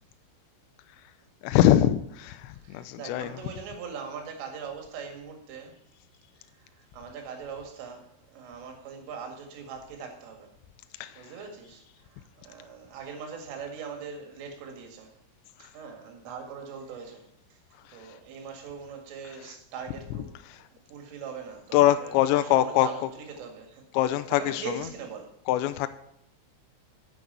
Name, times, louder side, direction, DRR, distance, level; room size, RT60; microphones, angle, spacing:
voice 1, 1.4-3.4 11.0-11.4 15.6-15.7 17.9-18.2 19.2-19.6 20.1-20.2 20.4-20.6 21.7-23.1 23.9-24.9 25.5-25.9, left 12 dB, 85° left, 2.6 m, -24 dB
voice 2, 2.6-5.7 6.9-8.1 8.3-10.5 11.2-11.8 12.4-15.1 15.6-17.2 17.9-20.3 20.9-23.8 24.4-25.3, right 6 dB, 80° right, 4.6 m, -41 dB
9.9 x 8.6 x 6.8 m
omnidirectional pair, 5.7 m